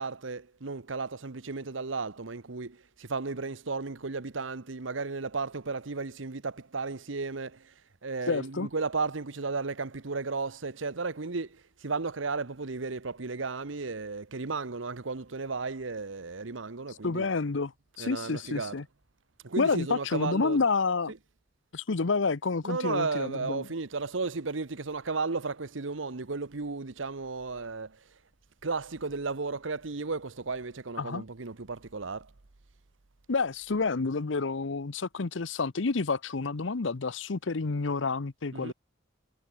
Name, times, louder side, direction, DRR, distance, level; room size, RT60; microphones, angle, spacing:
voice 1, 0.0-7.7 8.0-17.3 18.0-18.8 19.4-20.7 21.1-21.2 22.6-28.0 28.6-32.3 38.5-38.7, right 4 dB, 80° right, 1.1 m, -34 dB
voice 2, 8.3-8.7 17.0-17.7 18.0-18.8 19.6-21.1 21.7-23.7 31.0-31.2 33.3-38.7, left 4 dB, 70° left, 0.8 m, -29 dB
head